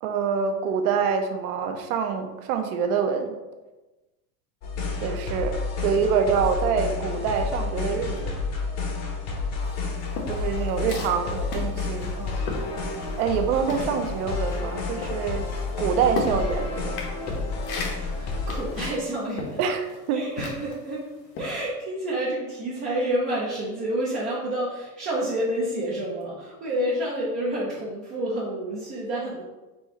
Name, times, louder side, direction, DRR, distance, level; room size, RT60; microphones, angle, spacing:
voice 1, 0.0-3.3 5.0-8.3 10.3-12.1 13.2-15.5 15.8-17.0 19.6-19.8 20.1-20.2, right 6 dB, 65° right, 6 dB, 0.7 m, -25 dB
sound 1, 4.6-18.9, left 4 dB, 35° left, 0.8 m, -30 dB
sound 2, 9.6-13.4 13.7-20.9 21.3-21.6, left 3 dB, 70° left, 1.2 m, -35 dB
voice 2, 10.4-10.9 11.2-11.4 12.1-12.5 18.1-19.6 20.1-29.4, right 1 dB, 20° right, -7 dB, 0.3 m, -29 dB
4.2 x 2.4 x 4.2 m, 1.1 s
supercardioid pair, 135°, 49 cm